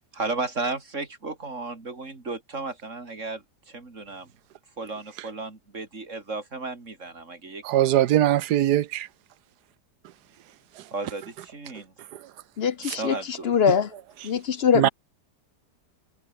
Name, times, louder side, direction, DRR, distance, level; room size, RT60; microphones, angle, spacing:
voice 1, 0.1-4.3 4.8-7.6 7.9-8.0 10.9-12.1 13.0-13.5, right 3 dB, 45° right, 3.9 m, -34 dB
voice 2, 7.6-9.1 12.9-13.0 14.7-14.9, right 13 dB, 75° right, 1.3 m, -21 dB
voice 3, 12.6-13.9 14.2-14.9, left 7 dB, 55° left, 0.7 m, -23 dB
omnidirectional pair, 1.8 m